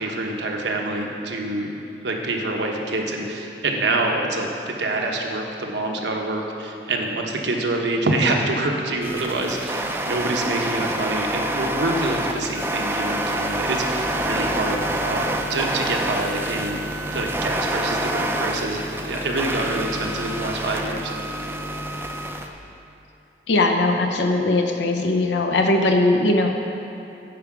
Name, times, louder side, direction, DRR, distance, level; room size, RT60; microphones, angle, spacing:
voice 1, 0.0-1.7 2.0-16.8 17.1-21.1, right 2 dB, 80° right, 1 dB, 1.0 m, -26 dB
sound 1, 9.0-22.5, right 1 dB, 15° right, 0.4 m, -27 dB
voice 2, 23.5-26.5, left 2 dB, 80° left, 3 dB, 0.6 m, -19 dB
9.4 x 4.9 x 6.1 m, 2.7 s
head